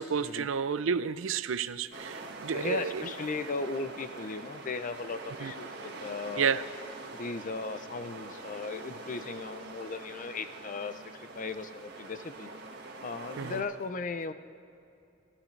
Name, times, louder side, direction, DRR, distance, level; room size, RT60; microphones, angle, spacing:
voice 1, 0.0-3.1 5.4-5.5 6.4-6.6 13.4-13.6, right 6 dB, 80° right, 14 dB, 0.5 m, -31 dB
sound 1, 1.9-13.6, right 2 dB, 55° right, 1.6 m, -44 dB
voice 2, 2.5-6.6 7.1-12.5 13.0-14.3, left 4 dB, 40° left, 10 dB, 0.6 m, -37 dB
30.0 x 12.0 x 3.3 m, 2.7 s
head